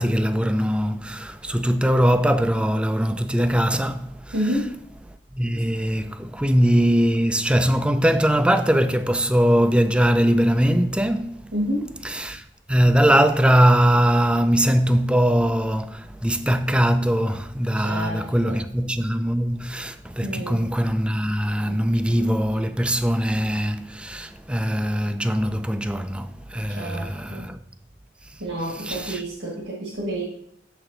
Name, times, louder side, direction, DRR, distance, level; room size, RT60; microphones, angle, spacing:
voice 1, 0.0-4.3 5.3-11.5 12.0-27.6 28.8-29.2, equal, 5° right, 0.4 m, -21 dB
voice 2, 4.3-4.7 11.5-11.9 17.8-18.6 20.2-20.7 21.7-21.8 26.7-27.5 28.4-30.2, equal, 80° right, 1.4 m, -29 dB
6.7 x 6.4 x 3.8 m
head